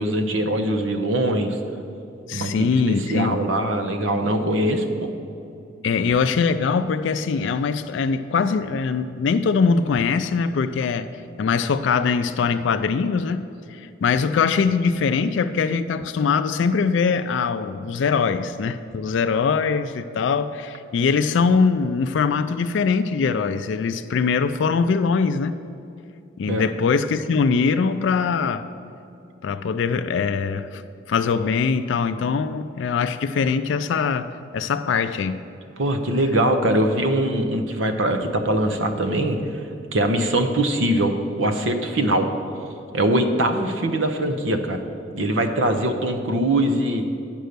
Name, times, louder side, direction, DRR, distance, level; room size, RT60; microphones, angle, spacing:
voice 1, 0.0-1.6 2.3-5.1 26.5-26.7 35.8-39.4 39.9-41.1 41.4-42.3 42.9-44.8 45.1-47.0, right 1 dB, 85° right, 7 dB, 0.8 m, -22 dB
voice 2, 2.3-3.4 5.8-11.1 11.4-25.6 26.4-28.7 29.4-30.8 31.1-34.3 34.5-35.5 36.6-36.8, left 5 dB, 75° left, 10 dB, 0.3 m, -22 dB
9.1 x 5.5 x 6.6 m, 2.6 s
head